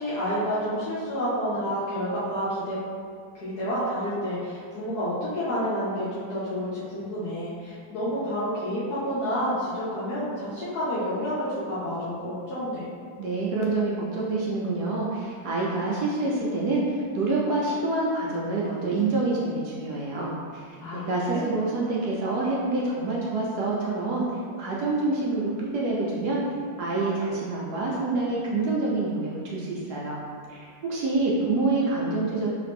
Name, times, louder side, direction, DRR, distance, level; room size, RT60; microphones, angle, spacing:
voice 1, 0.0-2.8 3.3-12.8 20.8-21.5, equal, 65° left, -10 dB, 1.1 m, -29 dB
voice 2, 13.2-24.2 24.5-26.4 26.8-30.2 30.5-32.5, right 3 dB, 75° right, -4 dB, 1.0 m, -27 dB
3.2 x 2.9 x 3.4 m, 2.1 s
omnidirectional pair, 2.1 m